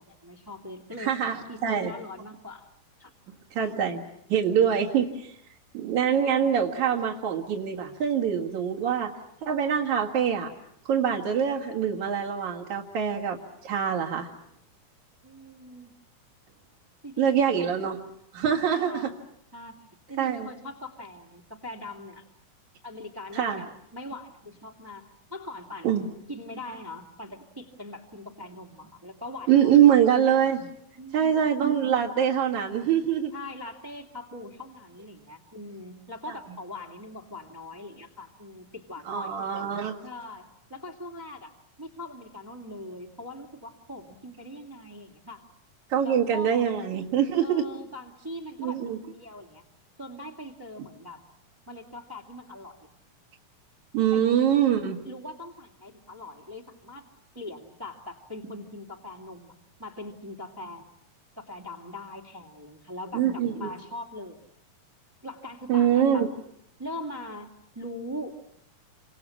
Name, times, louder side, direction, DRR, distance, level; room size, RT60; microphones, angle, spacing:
voice 1, 0.0-1.1 1.5-2.7 3.0-3.1 6.3-6.4 15.2-15.9 17.0-17.6 18.5-19.1 19.5-19.7 20.1-22.2 22.8-26.0 26.3-30.0 31.0-31.4 33.3-39.4 40.0-41.5 41.8-45.5 46.0-46.6 47.4-48.8 49.1-49.6 50.0-51.2 51.7-52.8 54.1-54.5 55.0-57.1 57.3-59.5 59.8-60.9 61.4-64.4 65.2-66.3 66.8-68.4, left 1 dB, 10° right, -1 dB, 1.6 m, -41 dB
voice 2, 1.0-1.9 3.5-4.0 4.3-5.4 5.7-9.2 9.4-10.5 10.8-14.3 17.2-18.0 18.3-19.1 20.2-20.5 23.3-23.6 25.8-26.1 29.5-30.7 31.1-33.3 36.3-36.4 39.1-40.0 45.9-47.6 48.6-49.0 53.9-55.0 63.1-63.7 65.7-66.3, right 9 dB, 55° right, -4 dB, 3.1 m, -24 dB
29.5 x 26.5 x 7.2 m, 0.75 s
omnidirectional pair, 4.2 m